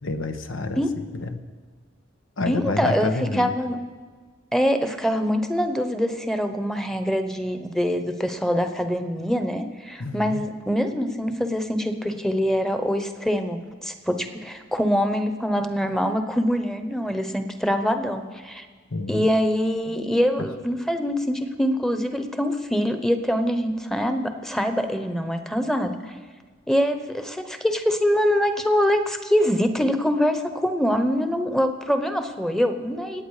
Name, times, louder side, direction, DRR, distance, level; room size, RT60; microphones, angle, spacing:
voice 1, 0.0-1.4 2.4-3.5 10.0-10.4 18.9-19.2, left 2 dB, 90° left, 7 dB, 1.1 m, -28 dB
voice 2, 2.5-3.8 4.5-18.7 19.1-26.1 26.7-33.2, equal, ahead, 7 dB, 0.9 m, -24 dB
25.5 x 8.9 x 4.9 m, 1.5 s
head